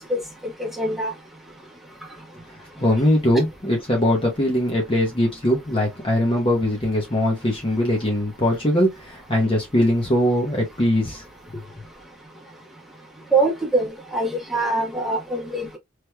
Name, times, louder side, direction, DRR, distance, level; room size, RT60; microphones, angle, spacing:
voice 1, 0.6-1.1 13.3-15.8, right 2 dB, ahead, 1.2 m, -23 dB
voice 2, 2.8-11.2 11.5-11.6, left 1 dB, 30° left, 0.9 m, -21 dB
3.3 x 3.0 x 2.2 m
head